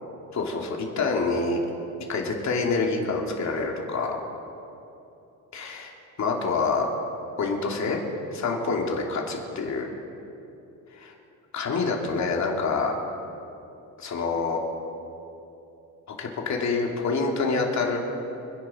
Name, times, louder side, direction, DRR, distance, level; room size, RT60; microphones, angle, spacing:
voice 1, 0.3-1.6 2.1-4.2 5.5-5.9 6.2-6.9 7.4-8.0 8.3-9.9 10.9-11.1 11.5-12.9 14.0-14.6 16.1-18.0, left 4 dB, 50° left, 0 dB, 3.0 m, -26 dB
27.5 x 10.5 x 4.5 m, 2.9 s
cardioid pair, 105°, 36 cm